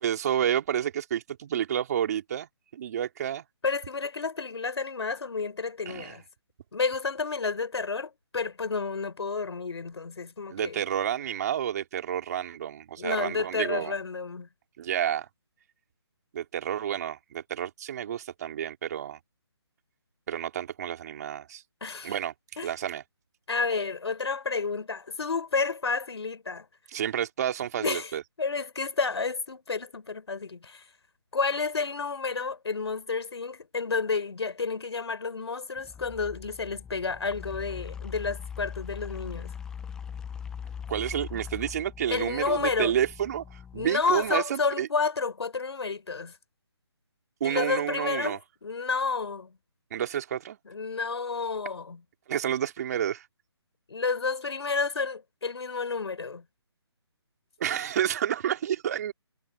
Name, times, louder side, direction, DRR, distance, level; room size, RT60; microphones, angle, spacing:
voice 1, 0.0-3.4 5.9-6.1 10.5-13.9 14.8-15.3 16.3-19.2 20.3-21.6 22.0-22.3 22.6-23.0 26.9-28.2 40.9-44.9 47.4-48.4 49.9-50.6 52.3-53.2 57.6-59.1, right 10 dB, 40° right, 3.7 m, -30 dB
voice 2, 3.6-6.2 6.7-10.8 13.0-14.5 21.8-22.1 22.6-22.7 23.5-26.7 27.8-28.1 28.4-30.8 31.3-39.5 42.1-43.0 43.7-46.3 47.4-49.6 50.6-52.0 53.9-56.4, left 4 dB, 70° left, 4.7 m, -30 dB
sound 1, 35.8-44.4, left 7 dB, 5° left, 0.5 m, -41 dB
figure-of-eight pair, 155°, 14 cm